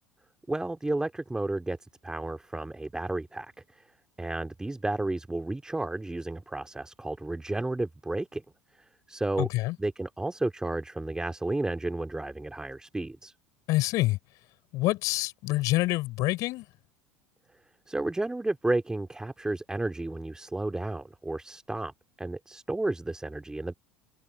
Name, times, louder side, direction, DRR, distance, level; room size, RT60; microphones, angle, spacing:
voice 1, 0.5-1.8 2.0-3.8 4.2-8.4 8.7-9.5 9.8-13.3 17.9-21.9 22.2-23.7, right 2 dB, 10° right, 3.4 m, -32 dB
voice 2, 9.4-9.7 13.7-14.2 14.7-16.6, left 19 dB, 55° left, 7.9 m, -26 dB
hypercardioid pair, 75°, 7 cm